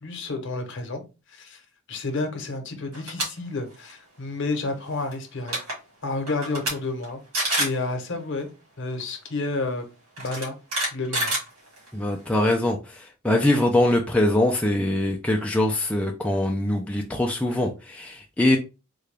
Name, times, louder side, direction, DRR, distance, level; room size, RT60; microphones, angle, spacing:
voice 1, 0.0-1.0 1.3-1.6 1.9-5.6 6.0-7.2 7.6-8.5 8.8-9.9 10.2-10.6 10.9-11.4, left 3 dB, 55° left, 5 dB, 0.8 m, -30 dB
sound 1, 2.9-3.3 3.7-3.9 5.1-5.2 5.4-5.7 6.3-6.7 7.0-7.1 7.3-7.8 9.0-9.1 10.2-12.0, right 1 dB, 90° right, 1.9 m, -27 dB
voice 2, 11.9-18.6, left 1 dB, 5° left, 1 dB, 0.3 m, -23 dB
3.8 x 2.2 x 3.3 m, 0.29 s
head